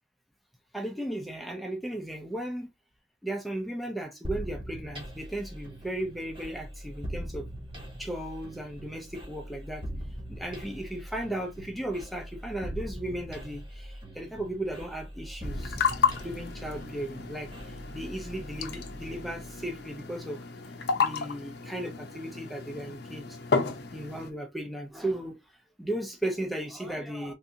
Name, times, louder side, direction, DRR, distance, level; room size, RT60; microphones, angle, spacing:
voice 1, 0.7-2.7 3.2-7.5 8.0-9.9 10.3-15.8 16.2-20.4 21.0-23.4 23.9-27.3, right 1 dB, ahead, 0.4 m, -36 dB
sound 1, 4.2-19.9, equal, 25° right, 1.1 m, -41 dB
sound 2, 15.4-24.3, left 5 dB, 55° left, 0.5 m, -32 dB
3.4 x 2.6 x 2.7 m
head